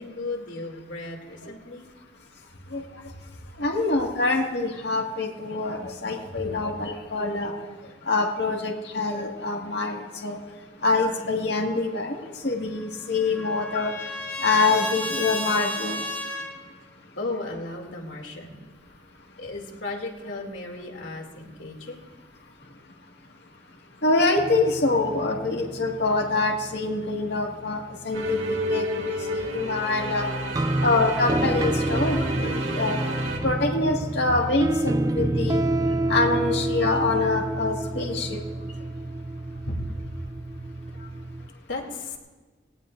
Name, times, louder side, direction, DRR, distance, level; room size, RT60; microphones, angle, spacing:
voice 1, 0.0-1.9 2.5-2.6 3.0-3.4 6.3-6.4 17.1-18.7 19.4-22.1 33.3-33.4 39.4-40.0 40.9-42.2, left 2 dB, 85° left, 1 dB, 2.7 m, -36 dB
voice 2, 3.6-7.5 8.0-10.4 10.8-13.9 14.4-16.0 24.0-30.3 30.8-33.0 33.4-35.6 36.1-38.4, left 3 dB, 65° left, 0 dB, 1.9 m, -25 dB
Trumpet, 12.7-16.6, left 1 dB, 10° left, 2.3 m, -33 dB
sound 1, 24.4-28.7 30.5-41.5, right 1 dB, 20° right, 0.3 m, -29 dB
sound 2, 28.1-33.4, right 1 dB, 85° right, 2.2 m, -30 dB
19.0 x 17.5 x 2.6 m, 1.2 s
head